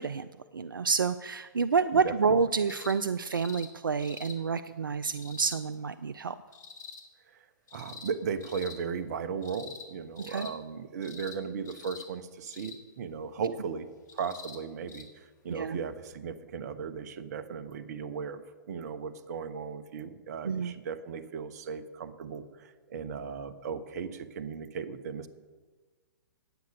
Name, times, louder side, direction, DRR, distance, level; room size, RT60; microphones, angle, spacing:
voice 1, 0.0-6.4 10.2-10.5 15.5-15.8 20.4-20.7, right 5 dB, 85° right, 11 dB, 0.4 m, -29 dB
voice 2, 1.9-2.4 7.3-7.5 7.7-13.9 14.1-25.3, right 6 dB, 55° right, 11 dB, 0.9 m, -37 dB
sound 1, 2.7-3.0 3.3-3.7 4.0-4.4 5.1-5.6 6.5-7.0 7.7-8.1 8.4-8.8 9.4-9.9 10.2-10.5 11.0-11.4 11.7-12.1 12.5-12.8 14.1-14.6 14.9-15.0 16.1-16.2, left 5 dB, 60° left, 1.8 m, -46 dB
9.4 x 8.0 x 6.7 m, 1.4 s
figure-of-eight pair, 120°, 11 cm